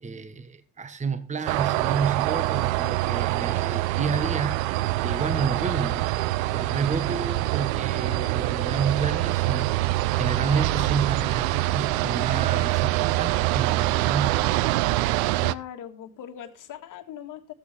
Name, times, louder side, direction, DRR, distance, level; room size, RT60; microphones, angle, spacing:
voice 1, 0.0-6.2 6.5-14.4, right 5 dB, 15° right, 1.2 m, -30 dB
sound 1, 1.4-15.5, right 17 dB, 75° right, 0.6 m, -25 dB
voice 2, 15.4-17.5, left 10 dB, 50° left, 1.7 m, -40 dB
15.0 x 8.2 x 3.3 m
hypercardioid pair, 85°, 41 cm